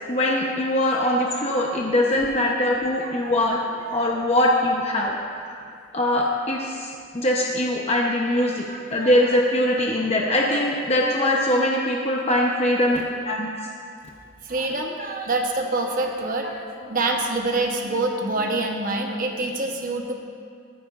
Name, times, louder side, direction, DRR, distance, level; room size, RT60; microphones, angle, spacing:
voice 1, 0.1-3.6 3.9-5.6 5.9-8.6 8.9-13.5, left 1 dB, 30° left, -2 dB, 0.9 m, -22 dB
voice 2, 3.0-3.3 3.9-4.0 8.7-9.1 14.4-20.1, right 2 dB, 40° right, 2 dB, 1.0 m, -26 dB
18.0 x 14.0 x 2.5 m, 2.3 s
head